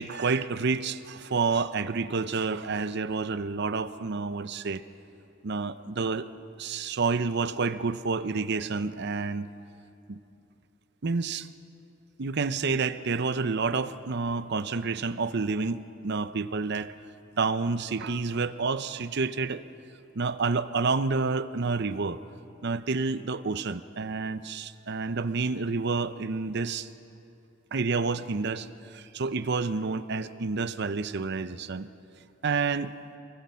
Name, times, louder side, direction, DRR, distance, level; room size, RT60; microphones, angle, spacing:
voice 1, 0.0-4.8 5.4-6.3 6.6-9.5 10.1-10.2 11.0-11.5 12.2-16.9 17.4-19.6 20.2-22.2 22.6-26.9 27.7-31.9 32.4-33.0, right 4 dB, 55° right, 13 dB, 0.7 m, -29 dB
24.0 x 21.5 x 5.6 m, 2.8 s
head